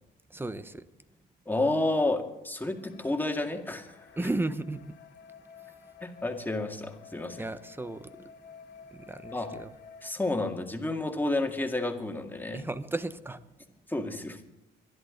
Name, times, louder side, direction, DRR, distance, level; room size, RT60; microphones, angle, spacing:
voice 1, 0.3-0.9 4.2-5.0 5.6-5.7 7.4-8.3 8.9-9.7 12.5-13.4, right 2 dB, 10° right, 13 dB, 1.0 m, -34 dB
voice 2, 1.5-4.1 6.0-7.4 9.3-9.5 10.0-12.6 13.9-14.4, left 2 dB, 10° left, 4 dB, 2.1 m, -30 dB
sound 1, 2.8-10.1, left 6 dB, 70° left, 2.3 m, -51 dB
25.0 x 11.0 x 3.9 m, 0.91 s
cardioid pair, 90°, 20 cm